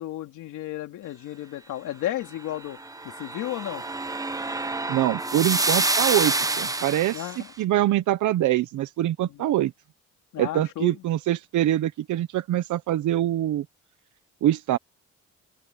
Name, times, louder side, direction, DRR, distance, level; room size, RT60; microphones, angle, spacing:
voice 1, 0.0-2.8 3.0-3.8 7.1-7.5 9.2-9.4 10.3-11.0, left 13 dB, 85° left, 3.3 m, -33 dB
sound 1, 2.7-7.4, right 2 dB, 10° right, 1.1 m, -27 dB
voice 2, 4.9-9.7 10.4-13.6 14.4-14.8, right 13 dB, 75° right, 1.0 m, -24 dB
open air
cardioid pair, 90°, 30 cm